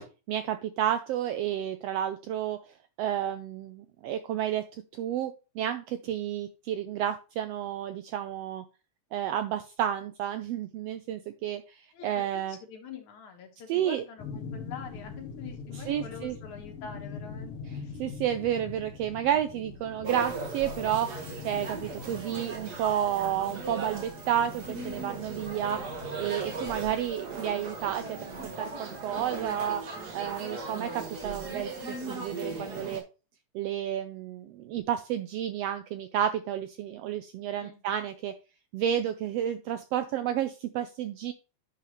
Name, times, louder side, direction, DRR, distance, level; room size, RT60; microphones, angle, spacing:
voice 1, 0.3-4.6 4.9-8.6 9.1-12.6 13.7-14.0 15.9-16.4 18.0-25.8 26.2-29.8 30.1-33.0 33.5-38.3 38.7-41.3, right 10 dB, 80° right, 9 dB, 1.4 m, -31 dB
voice 2, 12.5-17.6 17.8-18.0 37.6-37.8, left 7 dB, 85° left, 4 dB, 2.7 m, -45 dB
sound 1, 14.2-27.0, left 5 dB, 60° left, 1.8 m, -43 dB
sound 2, 20.0-33.0, right 3 dB, 45° right, 1.6 m, -38 dB
9.9 x 5.9 x 3.0 m, 0.32 s
omnidirectional pair, 3.3 m